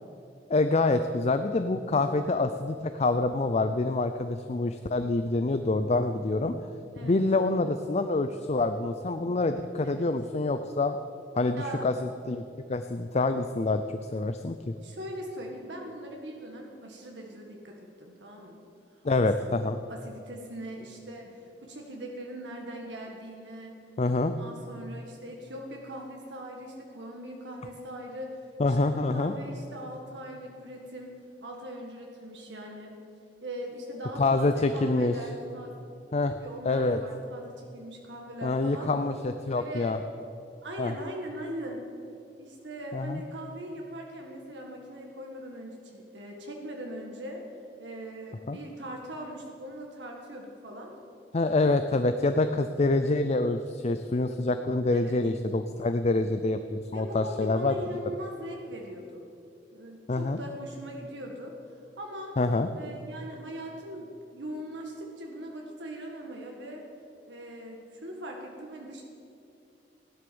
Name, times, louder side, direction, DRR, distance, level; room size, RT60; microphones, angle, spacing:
voice 1, 0.5-6.6 7.0-11.0 11.4-11.9 12.3-12.4 12.7-14.7 19.0-19.8 24.0-24.3 28.6-29.3 34.2-35.1 36.1-36.3 36.7-37.0 38.4-40.0 40.8-40.9 42.9-43.2 48.5-48.6 51.3-57.7 60.1-60.4 62.4-62.7, left 2 dB, 40° left, 9 dB, 0.5 m, -26 dB
voice 2, 11.5-11.9 14.8-18.6 19.2-19.3 19.9-23.8 24.2-31.1 31.4-33.0 33.4-35.8 36.3-38.9 39.5-40.0 40.6-41.9 42.4-47.4 47.8-50.9 54.9-55.2 56.9-59.2 59.7-61.5 62.0-62.4 62.7-66.9 67.3-69.0, equal, 85° right, 1 dB, 1.8 m, -40 dB
16.0 x 11.5 x 7.0 m, 2.6 s
head